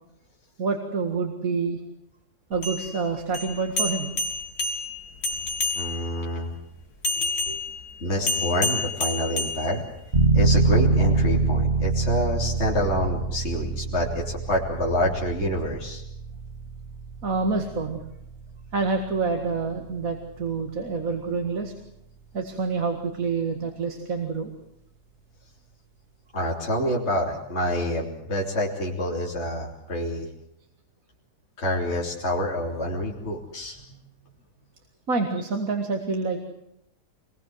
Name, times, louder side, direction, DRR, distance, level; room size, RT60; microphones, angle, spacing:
voice 1, 0.6-1.8 2.5-4.1 7.2-7.6 17.2-18.0 18.7-21.7 22.3-24.5 35.1-36.4, right 4 dB, 60° right, 4 dB, 2.3 m, -27 dB
sound 1, 2.5-6.2 7.0-10.2, left 3 dB, 70° left, 3.0 m, -29 dB
voice 2, 5.7-6.5 8.0-9.8 10.3-16.0 26.3-30.3 31.6-33.9, equal, 45° left, -2 dB, 3.5 m, -27 dB
sound 2, 10.1-20.7, right 4 dB, 40° right, 2.6 m, -26 dB
25.5 x 21.0 x 7.9 m, 0.79 s
omnidirectional pair, 1.7 m